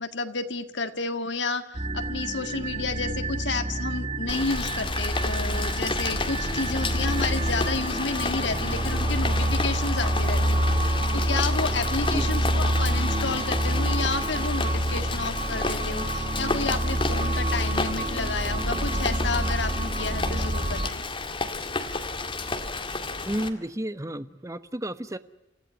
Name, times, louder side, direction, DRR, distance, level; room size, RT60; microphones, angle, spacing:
voice 1, 0.0-21.0, left 4 dB, 65° left, 9 dB, 1.8 m, -31 dB
sound 1, 1.7-20.9, right 1 dB, 30° right, 1.5 m, -27 dB
Rain, 4.3-23.5, left 3 dB, 25° left, 2.0 m, -31 dB
voice 2, 23.3-25.2, right 1 dB, 15° right, 12 dB, 1.0 m, -31 dB
28.5 x 15.0 x 9.4 m, 0.92 s
head